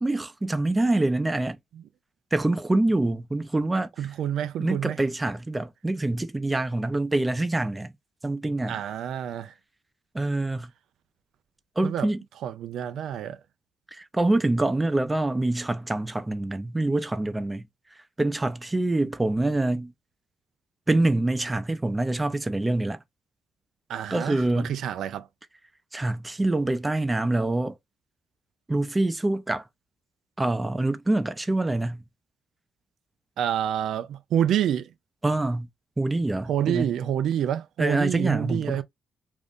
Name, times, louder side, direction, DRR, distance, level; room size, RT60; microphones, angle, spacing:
voice 1, 0.0-1.6 2.3-4.1 4.6-7.9 8.2-8.8 10.1-10.7 11.8-12.2 13.9-17.7 18.2-19.9 20.9-23.0 24.1-24.8 25.9-27.7 28.7-29.6 30.4-32.0 35.2-35.7 36.0-37.0 37.8-38.8, right 2 dB, 15° right, 0.5 m, -25 dB
voice 2, 4.0-5.0 8.7-9.5 11.8-12.1 12.4-13.4 23.9-25.3 33.4-34.9 36.5-38.8, right 10 dB, 80° right, 0.3 m, -28 dB
2.6 x 2.4 x 3.4 m
cardioid pair, 80°, 0 cm